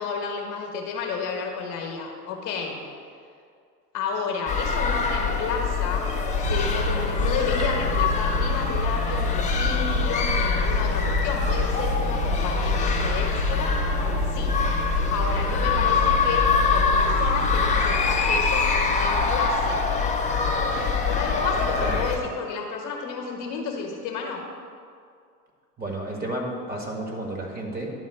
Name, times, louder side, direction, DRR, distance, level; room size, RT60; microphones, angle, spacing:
voice 1, 0.0-2.8 3.9-6.1 6.4-13.8 14.3-14.6 15.1-19.8 21.1-24.4, left 5 dB, 40° left, 1 dB, 1.4 m, -31 dB
sound 1, 4.5-22.2, left 5 dB, 15° left, 1.0 m, -24 dB
sound 2, 6.4-19.7, right 1 dB, 55° right, 2.0 m, -29 dB
voice 2, 25.8-27.9, right 1 dB, 20° right, 0 dB, 1.8 m, -31 dB
11.0 x 3.9 x 6.6 m, 2.3 s
hypercardioid pair, 90°, 47 cm